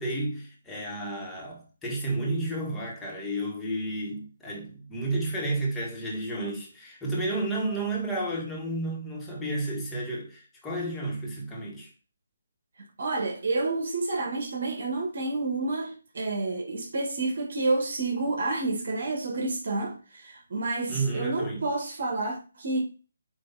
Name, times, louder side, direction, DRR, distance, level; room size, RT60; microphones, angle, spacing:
voice 1, 0.0-11.9 20.9-21.6, right 2 dB, 10° left, 1.9 m, -31 dB
voice 2, 13.0-22.8, right 3 dB, 60° right, 1.9 m, -29 dB
9.1 x 3.1 x 4.2 m
figure-of-eight pair, 155°, 0 cm